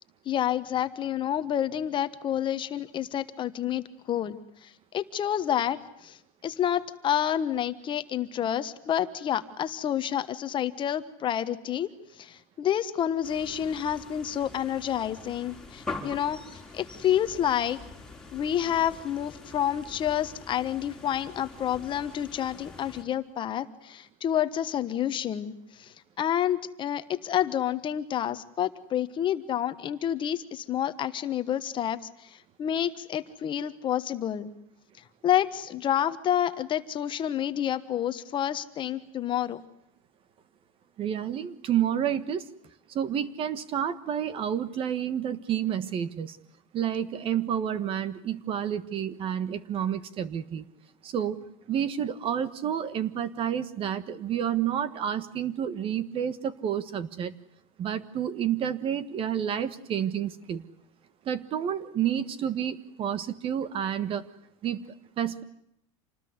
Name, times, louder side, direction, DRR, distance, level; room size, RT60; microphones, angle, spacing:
voice 1, 0.2-6.2 6.4-11.9 12.2-16.4 16.7-17.8 18.3-34.5 35.2-39.6, left 10 dB, 30° left, 11 dB, 1.3 m, -29 dB
sound 1, 13.2-23.0, left 3 dB, 5° left, 4.4 m, -44 dB
voice 2, 41.0-42.4 42.9-46.4 46.7-50.6 51.0-51.4 51.7-57.3 57.8-60.6 61.2-64.3 64.6-64.9 65.2-65.4, right 9 dB, 30° right, 15 dB, 1.5 m, -29 dB
27.5 x 20.0 x 9.7 m, 0.76 s
supercardioid pair, 150°, 18 cm